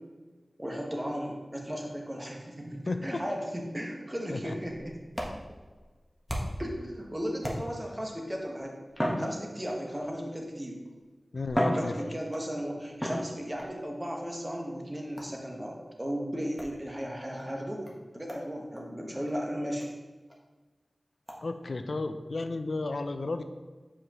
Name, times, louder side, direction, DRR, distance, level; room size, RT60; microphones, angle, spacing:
voice 1, 0.6-5.0 6.6-8.8 9.2-10.8 11.7-19.9, equal, 20° right, 0 dB, 1.3 m, -35 dB
voice 2, 2.9-3.2 4.3-4.6 11.3-12.1 21.4-23.4, left 3 dB, 70° left, 8 dB, 0.4 m, -33 dB
sound 1, 4.7-6.8 7.4-8.0 8.9-10.0 10.9-11.0 11.4-12.5 13.0-13.7 15.2-15.5 16.6-16.8 17.4-17.5 17.9-18.0 18.3-18.5 18.8-18.9 19.3-19.4 19.8-19.9 20.3-20.4 21.3-21.4, equal, ahead, 1.2 m, -34 dB
7.6 x 4.8 x 3.0 m, 1.3 s
wide cardioid pair, 55°, 0 cm